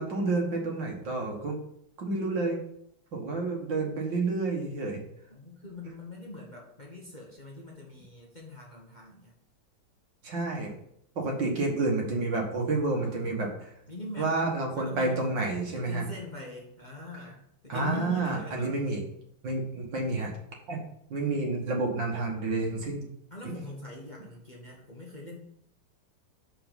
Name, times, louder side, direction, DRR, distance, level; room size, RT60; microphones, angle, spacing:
voice 1, 0.0-1.6 2.0-2.6 3.1-5.0 10.2-10.7 11.2-13.7 14.2-16.1 17.7-19.0 19.4-20.3 20.7-20.8 21.1-23.1 23.4-23.5, right 3 dB, 65° right, 0 dB, 2.3 m, -29 dB
voice 2, 5.3-9.3 12.9-13.4 13.9-14.3 14.7-15.2 15.7-18.7 23.3-25.4, left 2 dB, 25° left, -2 dB, 1.3 m, -42 dB
6.5 x 5.9 x 5.2 m, 0.70 s
omnidirectional pair, 2.1 m